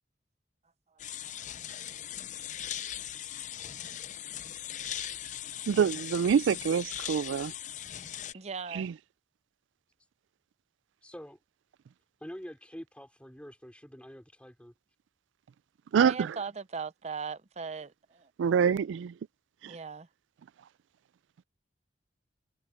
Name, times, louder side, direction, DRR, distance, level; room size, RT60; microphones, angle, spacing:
sound 1, 1.0-8.3, left 10 dB, 40° left, 0.6 m, -39 dB
voice 1, 5.7-7.5 8.7-8.9 15.9-16.3 18.4-19.1 19.6-19.8, right 7 dB, 90° right, 0.3 m, -26 dB
voice 2, 8.3-8.9 15.9-18.3 19.6-20.1, right 5 dB, 35° right, 0.6 m, -39 dB
voice 3, 11.0-11.4 12.2-14.7, equal, 5° left, 3.4 m, -46 dB
head